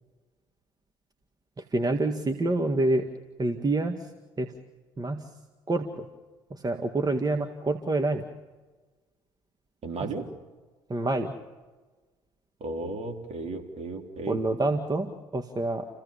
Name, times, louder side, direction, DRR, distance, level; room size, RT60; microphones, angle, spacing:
voice 1, 1.6-3.1 3.4-4.1 4.4-4.5 5.0-5.3 5.7-6.1 6.5-8.2 10.9-11.3 14.3-15.9, right 2 dB, 25° right, 6 dB, 1.9 m, -27 dB
voice 2, 9.8-10.3 12.6-14.4, right 3 dB, 45° right, 3 dB, 3.8 m, -34 dB
29.5 x 16.5 x 7.1 m, 1.3 s
hypercardioid pair, 60°, 15 cm